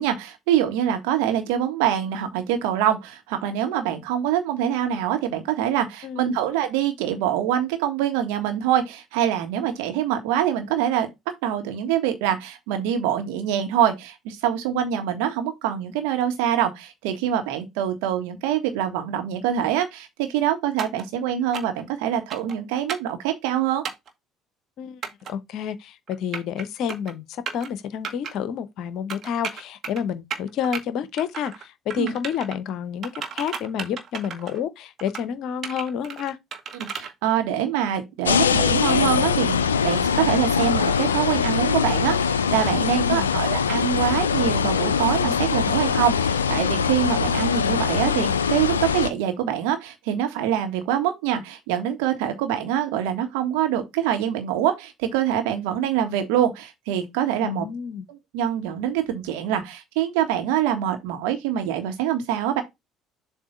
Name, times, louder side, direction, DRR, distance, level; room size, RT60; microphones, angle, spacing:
voice 1, 0.0-11.1 11.4-23.8 32.0-32.2 36.8-57.6 58.1-62.6, right 10 dB, 70° right, 1.3 m, -25 dB
voice 2, 6.0-6.4 24.8-25.0 25.3-36.4 43.0-43.4 57.4-58.1, left 8 dB, 60° left, 0.7 m, -29 dB
sound 1, 20.8-21.0 21.5-21.8 22.3-22.6 22.9-23.1 23.8-24.1 25.0-25.3 26.1-26.6 26.9-27.1 27.5-27.7 28.0-28.3 29.1-30.0 30.3-30.8 31.2-31.6 31.9-32.6 33.0-34.6 35.0-35.3 35.6-37.1, right 6 dB, 45° right, 1.2 m, -33 dB
sound 2, 38.2-49.1, left 6 dB, 85° left, 0.3 m, -22 dB
7.3 x 2.6 x 5.1 m
figure-of-eight pair, 55°, 0 cm